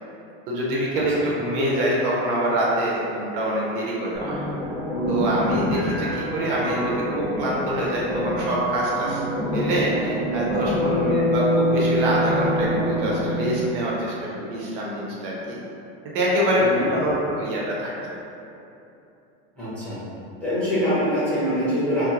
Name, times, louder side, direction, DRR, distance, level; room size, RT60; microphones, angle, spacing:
voice 1, 0.5-4.5 5.1-9.2 9.5-15.6 16.0-18.1, right 1 dB, 55° right, -4 dB, 0.6 m, -25 dB
sound 1, 4.1-13.7, equal, 30° left, 1.1 m, -25 dB
voice 2, 16.6-16.9 19.6-20.0 20.4-22.1, equal, 5° left, -12 dB, 0.7 m, -24 dB
2.8 x 2.0 x 3.6 m, 2.8 s
supercardioid pair, 170°, 33 cm